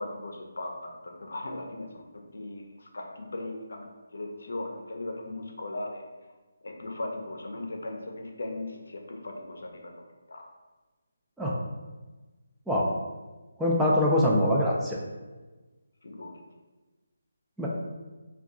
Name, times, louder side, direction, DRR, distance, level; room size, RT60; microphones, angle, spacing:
voice 1, 0.0-1.9 2.1-6.0 6.6-9.9 10.3-10.5 16.0-16.3, left 2 dB, 70° left, 2 dB, 0.5 m, -38 dB
voice 2, 13.6-15.0 17.6-17.7, left 1 dB, 5° right, -5 dB, 0.3 m, -23 dB
2.6 x 2.3 x 3.6 m, 1.2 s
figure-of-eight pair, 160°, 0 cm